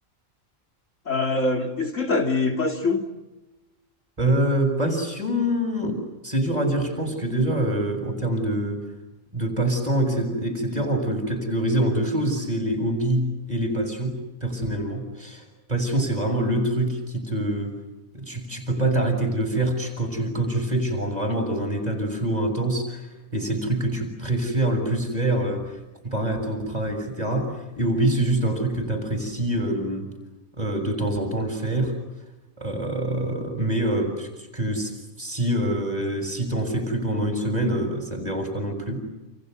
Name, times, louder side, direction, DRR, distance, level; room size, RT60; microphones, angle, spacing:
voice 1, 1.1-3.0 10.7-11.1, left 3 dB, 65° left, 3.4 m, -24 dB
voice 2, 4.2-8.9 9.3-17.8 18.1-30.0 30.6-32.0 32.6-39.0, right 1 dB, 30° right, 7.4 m, -25 dB
29.5 x 29.0 x 6.8 m
omnidirectional pair, 1.4 m